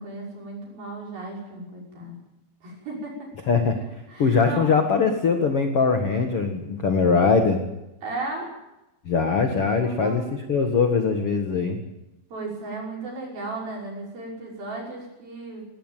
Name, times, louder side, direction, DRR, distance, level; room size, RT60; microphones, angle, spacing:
voice 1, 0.0-2.2 2.6-3.3 3.9-4.8 8.0-8.5 9.8-10.4 12.3-15.7, right 2 dB, 50° right, -2 dB, 7.6 m, -35 dB
voice 2, 3.5-3.8 4.2-7.6 9.0-10.2 10.5-11.8, left 5 dB, 85° left, 5 dB, 1.2 m, -21 dB
18.5 x 18.0 x 9.2 m, 0.93 s
omnidirectional pair, 5.5 m